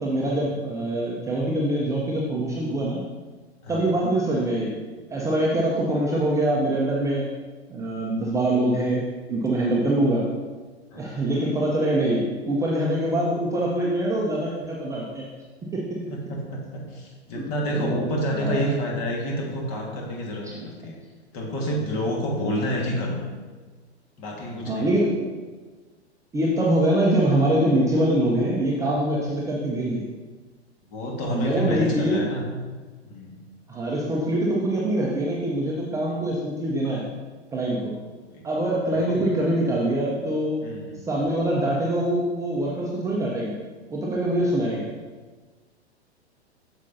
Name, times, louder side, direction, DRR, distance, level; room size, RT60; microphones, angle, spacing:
voice 1, 0.0-3.0 3.7-4.7 5.1-7.2 7.7-10.3 10.9-15.2 15.7-16.0 17.3-18.0 18.3-18.7 20.4-20.5 24.7-25.3 26.3-30.0 31.3-32.3 33.7-37.0 37.5-37.9 38.4-40.6 41.1-43.5 43.9-44.9, right 1 dB, 10° right, -4 dB, 0.6 m, -24 dB
voice 2, 3.6-3.9 5.5-5.6 9.7-9.8 10.9-11.2 16.1-21.0 21.3-23.2 24.2-24.9 30.9-32.5 33.0-33.4 36.0-36.1 38.2-38.4 38.9-39.3 40.6-41.0 44.6-44.8, equal, 35° left, -1 dB, 1.7 m, -29 dB
8.2 x 6.5 x 2.7 m, 1.4 s
figure-of-eight pair, 100°, 33 cm